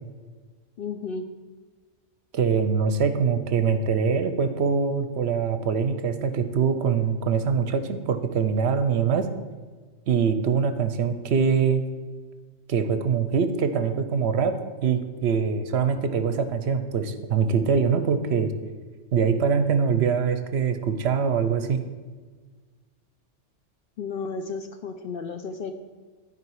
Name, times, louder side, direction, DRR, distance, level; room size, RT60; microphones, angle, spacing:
voice 1, 0.8-1.3 24.0-25.7, left 4 dB, 60° left, 7 dB, 0.6 m, -33 dB
voice 2, 2.3-9.3 10.1-11.8 12.7-14.6 14.8-18.5 19.1-21.8, right 6 dB, 65° right, 10 dB, 0.8 m, -23 dB
13.0 x 4.9 x 4.7 m, 1.4 s
omnidirectional pair, 1.3 m